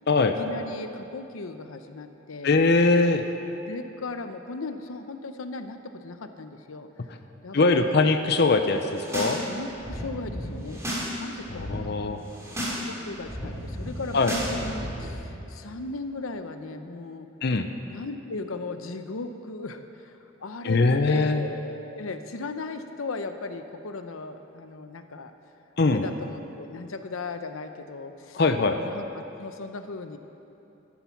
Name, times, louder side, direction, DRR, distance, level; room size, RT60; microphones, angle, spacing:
voice 1, 0.4-2.5 3.6-7.1 7.4-8.0 9.4-10.8 11.2-11.6 12.7-17.3 17.9-25.3 25.8-28.4 28.8-30.2, left 3 dB, 90° left, 8 dB, 0.8 m, -37 dB
voice 2, 2.4-3.2 7.5-9.4 11.5-12.2 14.1-14.3 17.4-17.7 20.6-21.4 25.8-26.0 28.3-28.8, left 3 dB, 55° left, 7 dB, 0.6 m, -21 dB
sound 1, 8.8-9.4 9.6-11.1 11.4-11.7 12.2-12.8 13.1-15.1, equal, 15° right, 2.7 m, -33 dB
13.5 x 11.0 x 5.9 m, 2.9 s
head